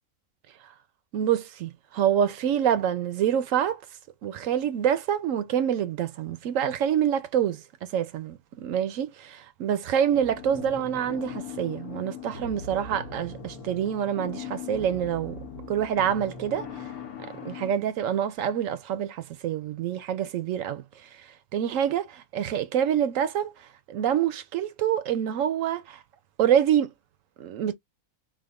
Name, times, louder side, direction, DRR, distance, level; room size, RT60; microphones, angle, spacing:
voice 1, 1.1-3.8 4.2-7.6 7.9-9.1 9.6-15.4 15.7-16.7 17.4-20.8 21.5-23.5 23.9-26.0 26.4-26.9 27.4-27.7, right 9 dB, 70° right, 0.9 m, -26 dB
sound 1, 10.1-17.7, left 6 dB, 80° left, 1.2 m, -40 dB
3.6 x 2.1 x 3.4 m
omnidirectional pair, 1.6 m